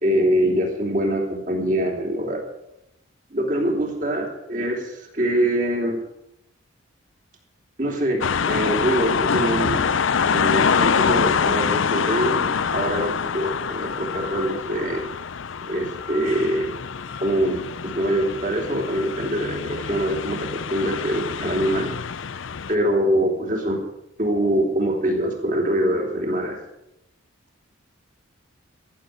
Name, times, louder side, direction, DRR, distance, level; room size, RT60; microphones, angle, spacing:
voice 1, 0.0-2.4 3.3-6.0 7.8-9.9 10.2-15.0 15.6-16.7 17.2-21.9 22.7-23.8 24.2-26.6, right 1 dB, 40° right, 0 dB, 3.5 m, -24 dB
sound 1, 8.2-22.8, left 6 dB, 65° left, 0.5 m, -25 dB
14.5 x 7.2 x 9.6 m, 0.85 s
head